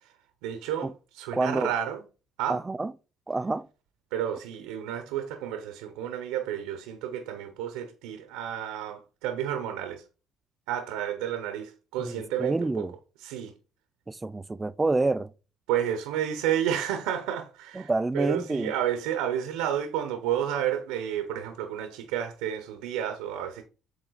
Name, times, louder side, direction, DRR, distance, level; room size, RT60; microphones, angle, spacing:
voice 1, 0.4-2.0 2.4-2.6 4.1-10.0 10.7-12.9 13.2-13.5 15.7-23.6, right 10 dB, 80° right, 1.0 m, -31 dB
voice 2, 1.3-1.7 2.5-2.9 3.3-3.7 12.0-12.9 14.1-15.3 17.8-18.7, right 2 dB, 20° right, 0.5 m, -28 dB
8.0 x 3.7 x 4.1 m
hypercardioid pair, 60°, 0 cm